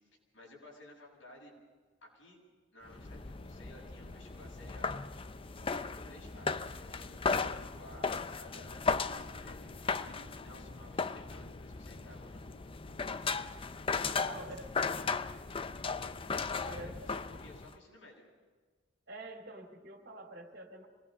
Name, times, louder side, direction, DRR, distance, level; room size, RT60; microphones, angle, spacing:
voice 1, 0.3-1.5 2.0-2.4 2.7-5.3 5.6-12.5 14.1-14.5 16.5-17.1 17.4-18.2, left 1 dB, 80° left, -2 dB, 8.0 m, -55 dB
sound 1, 2.9-17.8, left 4 dB, 30° left, 0.5 m, -36 dB
voice 2, 13.9-14.7 16.7-17.2 19.1-20.9, right 2 dB, 60° right, 3 dB, 2.9 m, -47 dB
26.0 x 20.0 x 5.4 m, 1.4 s
head